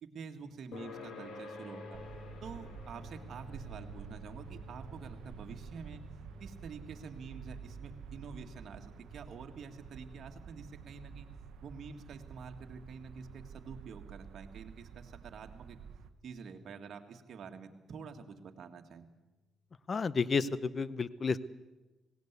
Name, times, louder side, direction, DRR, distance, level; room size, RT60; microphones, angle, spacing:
voice 1, 0.0-2.0 2.4-6.0 6.4-11.3 11.6-15.8 16.2-19.0, right 5 dB, 60° right, 5 dB, 1.9 m, -48 dB
sound 1, 0.7-15.6, left 3 dB, 70° left, 2.6 m, -52 dB
sound 2, 1.9-16.1, right 7 dB, 75° right, 1.0 m, -50 dB
voice 2, 19.9-21.5, left 5 dB, 40° left, 18 dB, 0.8 m, -31 dB
18.0 x 17.5 x 8.3 m, 1.1 s
cardioid pair, 90°, 0 cm